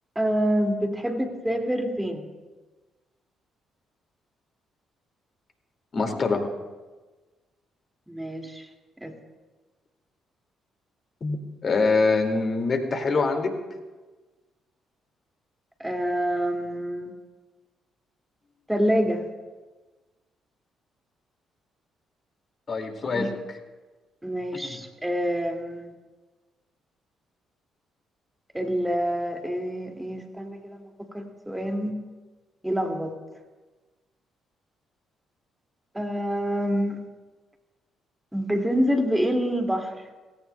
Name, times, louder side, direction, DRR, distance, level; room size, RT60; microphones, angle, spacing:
voice 1, 0.2-2.3 8.1-8.7 9.0-9.1 15.8-17.2 18.7-19.3 23.1-23.3 24.2-25.9 28.5-32.0 32.6-33.1 35.9-37.0 38.3-39.9, equal, 10° right, 4 dB, 2.2 m, -27 dB
voice 2, 5.9-6.4 11.2-11.4 11.6-13.5 22.7-23.3 24.5-24.8, left 4 dB, 45° left, 5 dB, 2.2 m, -24 dB
17.5 x 17.0 x 2.3 m, 1.3 s
figure-of-eight pair, 45°, 0 cm